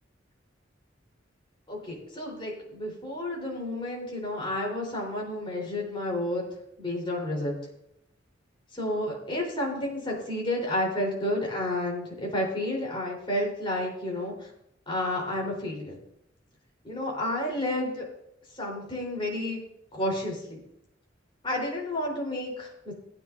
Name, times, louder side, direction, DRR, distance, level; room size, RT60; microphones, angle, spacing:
voice 1, 1.7-6.4 6.8-7.5 8.7-14.5 14.9-16.0 16.8-18.0 18.6-19.6 19.9-20.6 21.4-22.9, left 1 dB, 25° left, -2 dB, 3.8 m, -31 dB
16.0 x 9.6 x 2.6 m, 0.77 s
head